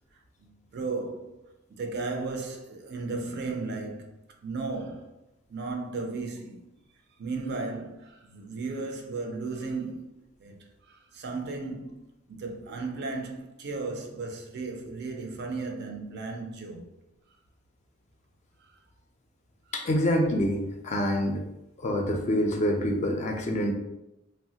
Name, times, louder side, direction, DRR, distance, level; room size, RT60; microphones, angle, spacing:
voice 1, 0.4-5.2 5.5-6.7 7.2-12.0 12.3-16.9 18.6-18.8, right 3 dB, 55° right, 0.4 m, -35 dB
voice 2, 19.7-21.4 21.8-23.7, equal, 35° left, 0.4 m, -26 dB
3.0 x 2.0 x 2.7 m
head